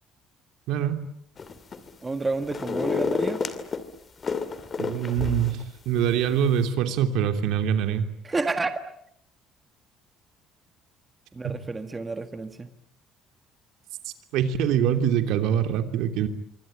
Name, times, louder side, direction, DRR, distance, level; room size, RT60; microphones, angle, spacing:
sound 1, 1.4-1.9 2.2-3.8 4.2-5.6 6.0-6.1, left 5 dB, 25° left, 2.5 m, -30 dB
voice 1, 2.0-3.4 8.2-8.9 11.3-12.7, right 3 dB, 15° right, 8 dB, 1.6 m, -30 dB
voice 2, 4.8-8.0 14.3-16.3, right 9 dB, 75° right, 8 dB, 3.0 m, -24 dB
26.5 x 24.5 x 9.1 m, 0.72 s
cardioid pair, 160°, 0 cm